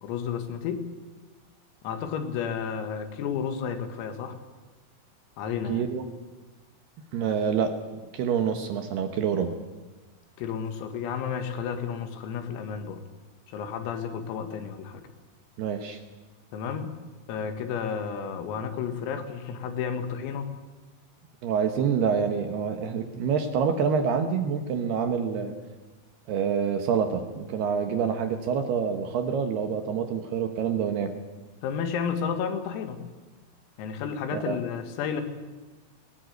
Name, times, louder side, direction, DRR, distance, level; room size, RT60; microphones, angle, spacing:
voice 1, 0.0-0.9 1.8-4.4 5.4-5.8 10.4-13.0 13.5-15.0 16.5-16.9 17.3-20.5 31.6-33.0 33.8-35.2, left 7 dB, 90° left, 7 dB, 4.5 m, -32 dB
voice 2, 5.7-6.0 7.1-7.7 8.1-9.5 15.6-16.0 21.4-25.5 26.3-31.1 34.3-34.6, right 7 dB, 70° right, 7 dB, 2.8 m, -27 dB
21.0 x 19.0 x 9.4 m, 1.2 s
omnidirectional pair, 5.9 m